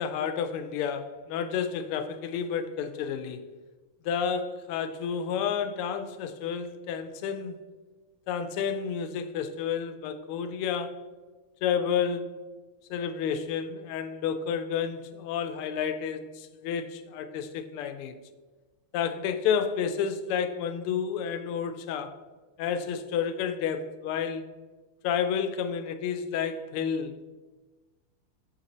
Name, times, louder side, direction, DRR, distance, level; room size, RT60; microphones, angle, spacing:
voice 1, 0.0-3.4 4.0-7.6 8.3-11.0 11.6-12.4 12.9-18.1 18.9-22.1 22.6-24.5 25.0-27.3, left 7 dB, 85° left, 8 dB, 1.5 m, -30 dB
6.6 x 3.9 x 4.1 m, 1.3 s
omnidirectional pair, 2.4 m